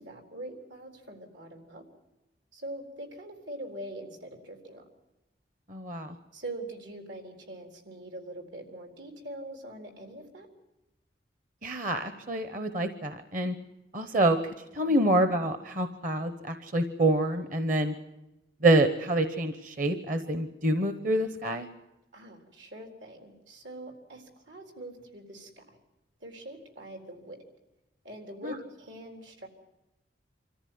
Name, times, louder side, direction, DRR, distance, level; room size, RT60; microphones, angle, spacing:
voice 1, 0.0-1.8 2.5-4.8 6.3-10.5 14.8-15.1 22.1-25.8 26.2-27.4 28.0-29.5, right 1 dB, 80° right, 4 dB, 4.0 m, -43 dB
voice 2, 5.7-6.1 11.6-13.5 13.9-14.4 14.7-17.9 18.6-21.7 28.4-28.5, right 1 dB, 45° right, 9 dB, 1.0 m, -27 dB
25.5 x 14.0 x 9.5 m, 0.97 s
head